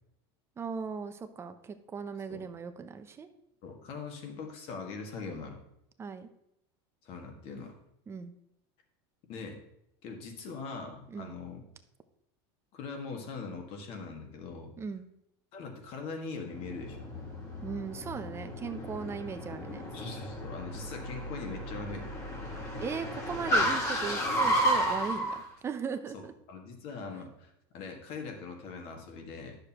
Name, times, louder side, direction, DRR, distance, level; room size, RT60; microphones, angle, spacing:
voice 1, 0.6-3.3 6.0-6.3 8.1-8.3 11.1-11.3 14.8-15.1 17.6-19.8 22.8-26.3, right 5 dB, 20° right, 9 dB, 0.6 m, -38 dB
voice 2, 3.6-5.6 7.0-7.7 9.3-9.6 10.0-11.6 12.7-14.7 15.5-17.1 19.9-22.1 26.1-26.2 26.5-29.6, left 4 dB, 45° left, 3 dB, 1.7 m, -41 dB
Car, 16.4-25.4, equal, 25° left, 1.9 m, -32 dB
10.5 x 6.7 x 2.9 m, 0.81 s
supercardioid pair, 135°, 13 cm